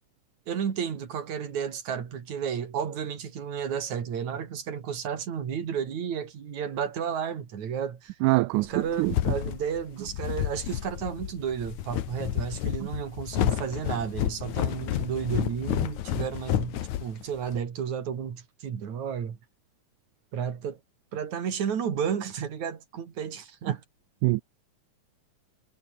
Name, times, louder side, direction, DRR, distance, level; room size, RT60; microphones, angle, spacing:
voice 1, 0.5-8.2 8.7-19.4 20.3-20.8 21.1-23.8, right 7 dB, 65° right, 3.9 m, -32 dB
voice 2, 8.2-8.7 9.0-9.1 24.2-24.4, right 21 dB, 85° right, 2.1 m, -23 dB
sound 1, 8.7-17.6, left 12 dB, 70° left, 2.5 m, -30 dB
omnidirectional pair, 3.5 m